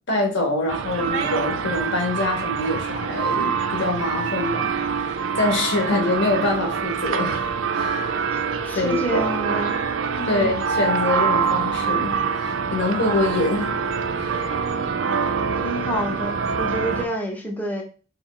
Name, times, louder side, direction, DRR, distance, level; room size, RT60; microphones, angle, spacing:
voice 1, 0.1-4.7 5.4-8.2 8.7-9.2 10.3-13.7 14.2-14.5, left 2 dB, 60° left, 0.9 m, -25 dB
sound 1, 0.7-17.1, right 6 dB, 70° right, 0.4 m, -25 dB
voice 2, 8.6-9.8 10.2-10.5 15.6-17.8, right 1 dB, 10° left, 0.6 m, -28 dB
3.1 x 2.3 x 3.7 m
head